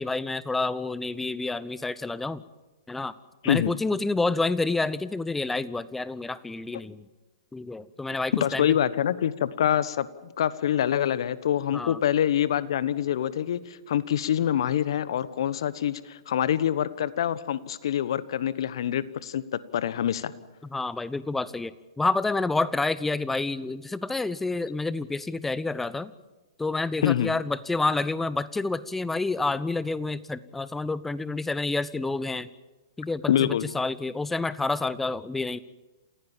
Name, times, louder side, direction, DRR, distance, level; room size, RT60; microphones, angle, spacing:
voice 1, 0.0-2.4 2.9-3.1 3.4-7.1 7.5-8.8 11.7-12.0 20.7-26.1 26.6-32.5 33.0-35.6, left 3 dB, 5° left, 17 dB, 0.8 m, -29 dB
voice 2, 8.4-19.4 19.7-20.3 27.0-27.3 33.3-33.7, left 10 dB, 65° left, 17 dB, 1.1 m, -25 dB
28.5 x 16.0 x 7.3 m, 1.1 s
hypercardioid pair, 120°, 3 cm